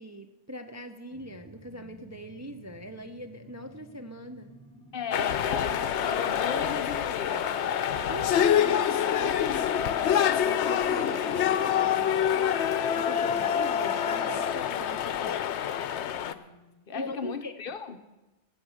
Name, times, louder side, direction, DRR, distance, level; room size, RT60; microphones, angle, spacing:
voice 1, 0.0-4.5 8.0-12.7 12.9-15.4 16.9-17.5, equal, 20° right, 5 dB, 0.5 m, -42 dB
sound 1, 1.1-16.0, left 1 dB, 5° left, 2.5 m, -53 dB
voice 2, 4.9-7.5 16.3-18.0, left 5 dB, 55° left, 10 dB, 0.9 m, -37 dB
sound 2, 5.1-16.3, left 9 dB, 75° left, 0.9 m, -26 dB
sound 3, 5.5-14.5, right 8 dB, 40° right, 1.5 m, -44 dB
18.0 x 8.0 x 6.4 m, 1.0 s
omnidirectional pair, 1.2 m